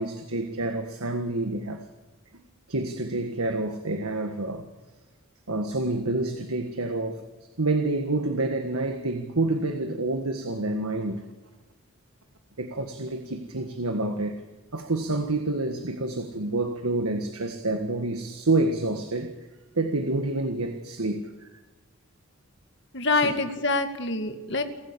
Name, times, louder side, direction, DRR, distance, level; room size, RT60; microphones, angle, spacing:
voice 1, 0.0-1.8 2.7-4.6 5.5-7.2 7.6-11.2 12.6-14.4 14.7-19.3 19.7-21.6 23.1-23.3, right 2 dB, 90° right, 1.7 m, -28 dB
voice 2, 22.9-24.6, left 3 dB, 55° left, 2.1 m, -25 dB
29.0 x 13.5 x 8.5 m
head